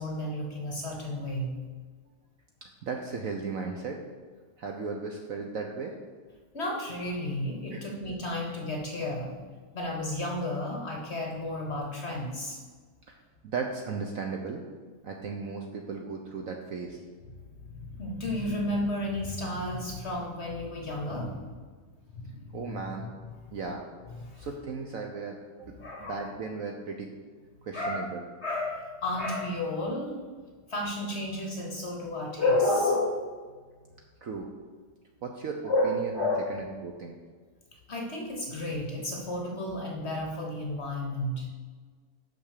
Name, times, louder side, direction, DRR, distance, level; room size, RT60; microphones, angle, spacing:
voice 1, 0.0-1.7 6.5-9.4 9.7-12.6 17.6-21.5 22.1-23.1 24.2-24.5 25.8-26.3 27.7-28.1 28.4-30.2 30.7-33.3 35.6-36.6 37.9-41.5, left 1 dB, 45° left, 1 dB, 1.0 m, -32 dB
voice 2, 2.8-4.0 4.6-6.0 7.7-7.9 13.1-13.2 13.4-14.6 15.0-17.0 22.5-23.1 23.5-23.8 24.4-27.1 27.6-28.2 34.2-34.5 35.2-37.2, right 4 dB, 60° right, 2 dB, 0.9 m, -36 dB
6.1 x 6.0 x 6.5 m, 1.5 s
omnidirectional pair, 2.0 m